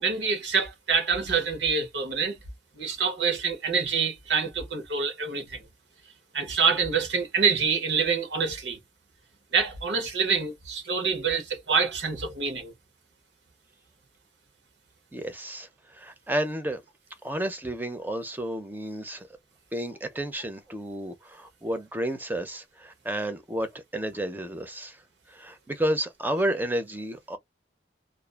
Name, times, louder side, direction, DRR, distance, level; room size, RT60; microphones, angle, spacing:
voice 1, 0.0-2.4 2.8-5.6 6.3-8.8 9.5-12.7, right 5 dB, 80° right, 0.8 m, -26 dB
voice 2, 15.1-15.7 15.9-16.8 17.2-19.3 19.7-25.0 25.3-27.4, right 1 dB, 10° right, 0.5 m, -31 dB
2.4 x 2.3 x 2.3 m
head